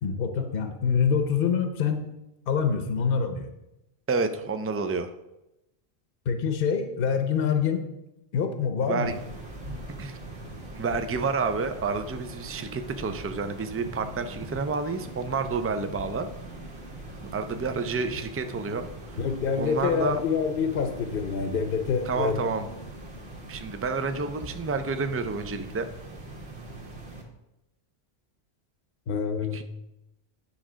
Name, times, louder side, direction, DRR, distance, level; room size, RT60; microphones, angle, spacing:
voice 1, 0.0-2.0 2.5-3.5 6.3-7.8 8.3-9.1 19.2-22.4 29.1-29.6, left 6 dB, 60° left, 7 dB, 0.9 m, -26 dB
voice 2, 4.1-5.1 8.9-9.2 10.0-10.2 10.7-16.3 17.2-18.9 19.6-20.2 22.1-22.7 23.5-25.9 29.5-29.6, right 4 dB, 25° right, 9 dB, 0.3 m, -29 dB
sound 1, 9.0-27.2, right 2 dB, 70° right, 1.8 m, -41 dB
9.9 x 3.8 x 6.1 m, 0.91 s
omnidirectional pair, 1.1 m